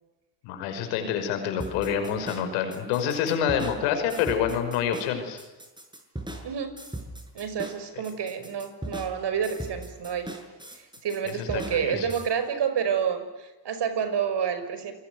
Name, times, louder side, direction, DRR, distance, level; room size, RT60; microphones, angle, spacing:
voice 1, 0.4-5.4 11.4-12.1, left 8 dB, 90° left, 7 dB, 5.8 m, -27 dB
sound 1, 1.6-12.3, right 1 dB, 10° right, 6.7 m, -39 dB
voice 2, 6.4-6.8 7.3-10.3 10.7-14.9, right 7 dB, 55° right, 10 dB, 5.6 m, -29 dB
28.0 x 22.0 x 9.6 m, 1.1 s
supercardioid pair, 70°, 48 cm